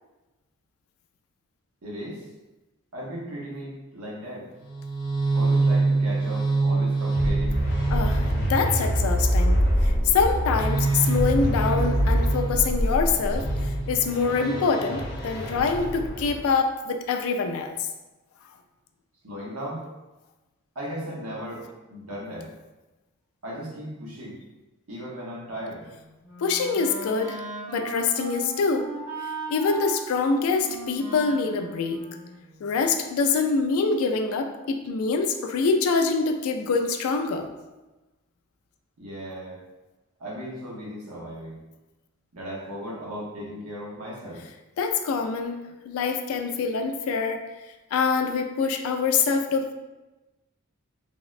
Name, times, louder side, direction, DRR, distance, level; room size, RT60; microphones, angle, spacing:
voice 1, 1.8-2.3 2.9-4.5 5.3-7.6 19.2-19.8 20.7-22.5 23.4-24.4 24.9-25.8 39.0-39.6 40.2-41.6 42.3-44.4, equal, 80° right, -5 dB, 0.8 m, -36 dB
sound 1, 4.6-16.4, right 1 dB, 55° left, 0.8 m, -24 dB
voice 2, 7.9-17.8 26.4-27.4 27.7-28.9 29.5-32.0 32.6-37.5 44.8-45.5 45.8-47.4 47.9-49.7, left 4 dB, 75° left, 6 dB, 0.3 m, -25 dB
Wind instrument woodwind instrument, 25.8-32.9, right 2 dB, 40° right, 0.9 m, -38 dB
3.4 x 2.0 x 2.4 m, 1.1 s
head